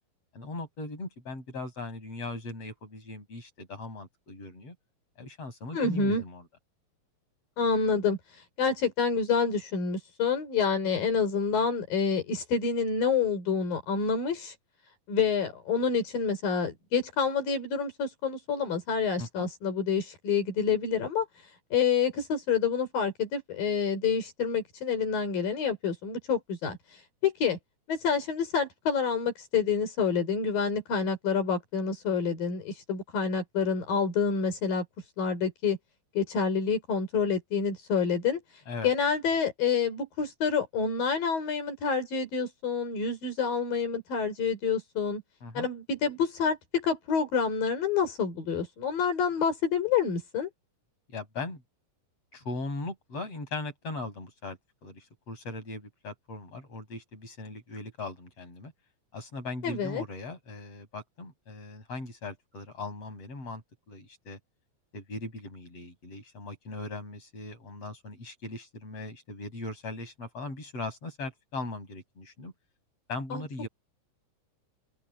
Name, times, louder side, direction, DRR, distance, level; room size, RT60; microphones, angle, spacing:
voice 1, 0.3-4.7 5.2-6.4 19.2-19.5 38.7-38.9 45.4-45.7 51.1-51.6 52.3-58.7 59.1-64.4 64.9-72.5 73.1-73.7, left 2 dB, 45° left, 8.3 m, -39 dB
voice 2, 5.7-6.2 7.6-8.2 8.6-14.5 15.1-21.3 21.7-26.8 27.2-27.6 27.9-34.8 35.2-35.8 36.1-38.4 38.8-45.2 45.5-50.5 59.6-60.0 73.3-73.4, left 6 dB, 80° left, 6.3 m, -28 dB
open air
omnidirectional pair, 4.0 m